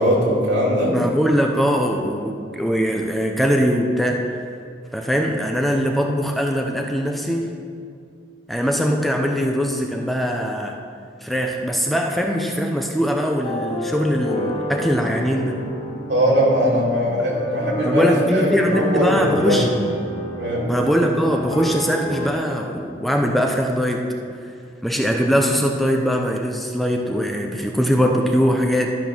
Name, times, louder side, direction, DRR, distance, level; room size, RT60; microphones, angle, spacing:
voice 1, 0.0-1.0 16.1-19.7 20.4-20.7, equal, 85° right, -4 dB, 2.8 m, -20 dB
voice 2, 0.9-4.2 4.9-7.6 8.5-10.8 11.2-15.6 17.8-19.7 20.7-24.0 24.8-28.9, equal, ahead, 2 dB, 0.6 m, -21 dB
sound 1, 13.4-22.3, equal, 35° left, 1.2 m, -30 dB
12.5 x 5.3 x 6.0 m, 2.3 s
head